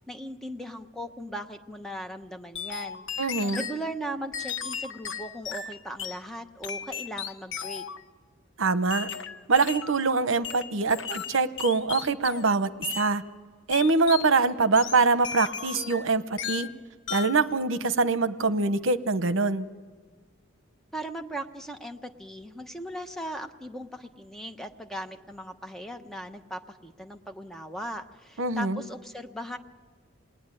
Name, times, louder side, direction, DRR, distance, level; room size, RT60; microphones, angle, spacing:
voice 1, 0.0-3.0 3.5-7.8 20.9-29.6, right 1 dB, ahead, 5 dB, 1.1 m, -38 dB
sound 1, 2.5-3.8 4.3-6.2 6.6-8.0 8.9-10.0 10.4-12.5 12.8-13.1 13.7-14.3 14.8-16.1 16.4-16.8 17.1-17.4, left 8 dB, 65° left, 1.1 m, -35 dB
voice 2, 3.2-3.7 8.6-9.1 9.5-12.7 12.9-13.2 13.7-16.7 17.1-19.7 28.4-28.8, right 4 dB, 75° right, 12 dB, 0.9 m, -24 dB
27.5 x 20.5 x 9.8 m, 1.5 s
head